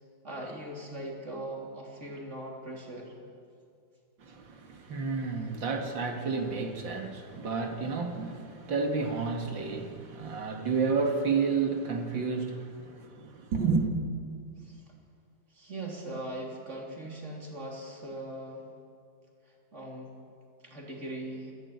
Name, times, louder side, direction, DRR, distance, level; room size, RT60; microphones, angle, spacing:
voice 1, 0.2-3.2 14.6-14.8 15.5-18.7 19.4-20.1 20.6-21.5, right 1 dB, 40° right, 3.7 m, -40 dB
voice 2, 4.2-13.9, right 4 dB, 85° right, 2.7 m, -31 dB
27.0 x 11.0 x 9.7 m
omnidirectional pair, 2.0 m